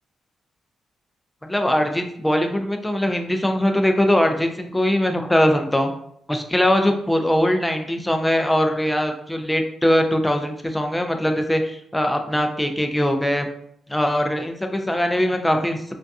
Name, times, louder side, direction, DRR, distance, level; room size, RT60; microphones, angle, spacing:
voice 1, 1.4-5.9 6.3-13.5 13.9-15.9, equal, 10° left, 5 dB, 0.3 m, -21 dB
2.3 x 2.2 x 2.5 m, 0.69 s
cardioid pair, 105°, 0 cm